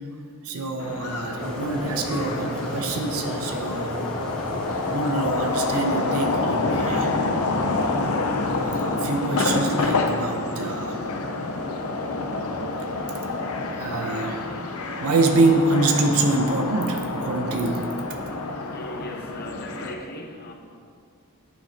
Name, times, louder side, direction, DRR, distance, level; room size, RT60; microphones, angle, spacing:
voice 1, 0.4-4.1 4.9-7.1 8.6-11.0 12.4-18.5, right 2 dB, 80° right, 4 dB, 0.7 m, -26 dB
sound 1, 0.8-19.9, left 3 dB, 75° left, 0.6 m, -27 dB
sound 2, 1.4-6.7, equal, 5° left, 1.1 m, -35 dB
voice 2, 18.7-20.5, left 1 dB, 45° left, 2 dB, 0.8 m, -38 dB
9.8 x 6.0 x 2.9 m, 2.2 s
head